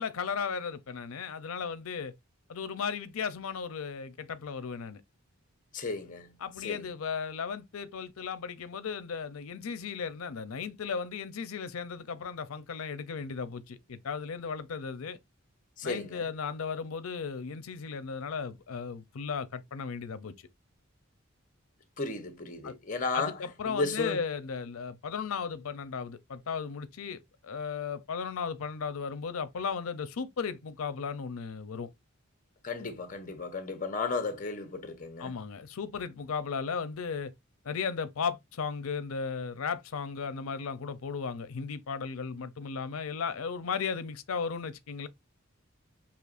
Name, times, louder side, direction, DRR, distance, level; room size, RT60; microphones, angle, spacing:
voice 1, 0.0-2.1 2.5-5.0 6.4-15.2 15.8-20.3 22.6-22.7 23.1-31.9 35.2-37.3 37.6-45.1, left 6 dB, 90° left, 0.5 m, -35 dB
voice 2, 5.7-6.3 6.6-6.8 15.8-16.2 22.0-23.4 23.7-24.2 32.6-35.3, left 3 dB, 40° left, 0.8 m, -34 dB
6.3 x 2.9 x 2.5 m
head